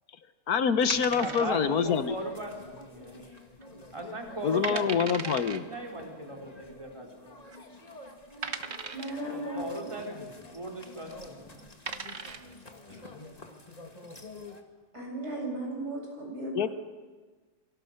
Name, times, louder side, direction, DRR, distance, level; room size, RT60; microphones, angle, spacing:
voice 1, 0.5-2.2 4.4-5.6 16.3-16.7, left 7 dB, 65° left, 11 dB, 1.5 m, -26 dB
sound 1, 0.8-14.6, left 2 dB, 25° left, 2.1 m, -49 dB
sound 2, 0.9-1.9 2.1-2.2 2.8-3.2 3.6-3.7 4.3-4.4 4.6-5.6 6.7-6.8 7.5-7.6 8.4-9.3 11.1-11.3 11.7-12.5, right 5 dB, 45° right, 1.4 m, -37 dB
voice 2, 1.1-3.2 3.9-7.3 9.3-11.6, right 1 dB, 15° right, 0 dB, 4.1 m, -39 dB
voice 3, 8.9-9.6 12.9-13.0 14.9-16.7, right 1 dB, 75° right, 0 dB, 8.5 m, -36 dB
28.0 x 25.0 x 6.6 m, 1.4 s
omnidirectional pair, 1.7 m